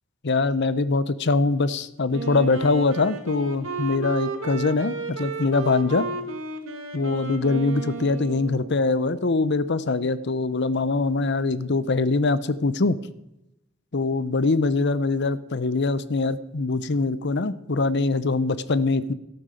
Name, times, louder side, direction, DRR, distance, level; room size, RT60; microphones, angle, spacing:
voice 1, 0.2-6.1 6.9-13.0 13.9-19.1, left 3 dB, 55° left, 16 dB, 0.7 m, -23 dB
Wind instrument woodwind instrument, 2.1-8.8, right 4 dB, 75° right, 1.9 m, -33 dB
13.0 x 12.5 x 5.0 m, 0.87 s
head